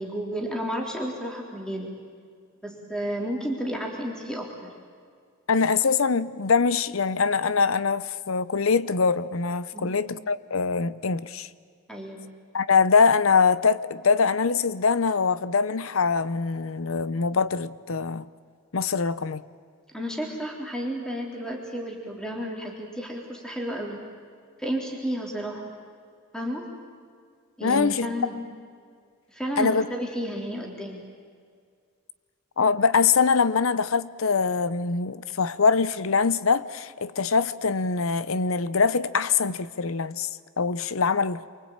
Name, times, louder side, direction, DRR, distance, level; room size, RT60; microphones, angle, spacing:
voice 1, 0.0-1.9 2.6-4.7 9.7-10.1 11.9-12.3 19.9-24.0 24.6-25.7 26.3-26.7 27.6-28.4 29.3-31.0, equal, 5° left, 3.6 m, -32 dB
voice 2, 5.5-11.5 12.5-18.3 18.7-19.4 27.6-28.1 29.6-29.8 32.6-40.3 40.6-41.5, left 5 dB, 80° left, 0.8 m, -23 dB
28.0 x 23.5 x 8.9 m
head